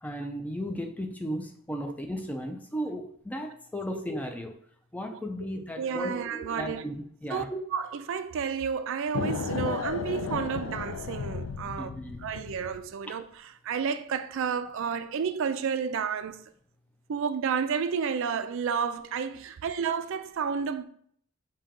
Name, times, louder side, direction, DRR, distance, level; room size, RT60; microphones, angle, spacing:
voice 1, 0.0-4.5 4.9-7.6 11.8-12.2, equal, 5° left, 0.5 m, -35 dB
voice 2, 5.8-6.8 7.3-7.4 7.7-11.9 12.2-16.5 17.1-20.8, right 6 dB, 65° right, 0.4 m, -31 dB
sound 1, 9.1-12.9, left 5 dB, 75° left, 0.4 m, -34 dB
5.1 x 2.8 x 3.6 m
head